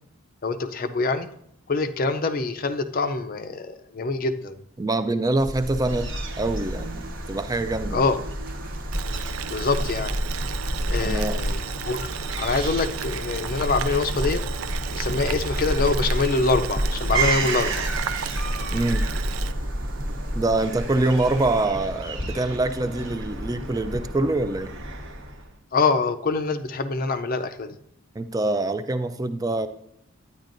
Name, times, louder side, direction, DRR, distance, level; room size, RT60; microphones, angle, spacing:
voice 1, 0.4-1.3 1.7-4.6 7.9-8.2 9.5-10.2 10.9-12.1 12.4-14.4 14.9-18.0 25.7-27.8, left 3 dB, 40° left, 9 dB, 0.5 m, -25 dB
voice 2, 4.8-8.0 11.0-11.4 18.7-19.1 20.3-24.7 28.2-29.7, right 2 dB, 15° right, 11 dB, 0.3 m, -25 dB
sound 1, 5.4-21.6, equal, 40° right, 0.7 m, -36 dB
Fowl / Gull seagull, 5.6-25.5, right 1 dB, 60° right, 1.1 m, -30 dB
Boiling, 8.9-19.5, right 9 dB, 80° right, 0.4 m, -35 dB
10.5 x 9.7 x 2.6 m, 0.74 s
head